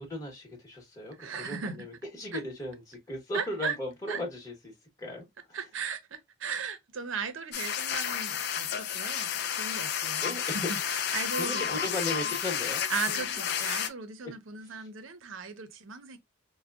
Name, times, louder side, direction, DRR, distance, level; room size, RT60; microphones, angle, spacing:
voice 1, 0.1-4.7 5.0-5.6 10.2-10.7 11.3-12.8 14.6-14.9, left 1 dB, 15° left, 1.0 m, -37 dB
voice 2, 1.2-1.8 2.3-2.4 3.3-3.7 4.1-4.2 5.5-11.9 12.9-16.2, right 5 dB, 80° right, 0.7 m, -37 dB
sound 1, 7.5-13.9, left 8 dB, 55° left, 0.4 m, -31 dB
4.7 x 2.2 x 2.3 m
head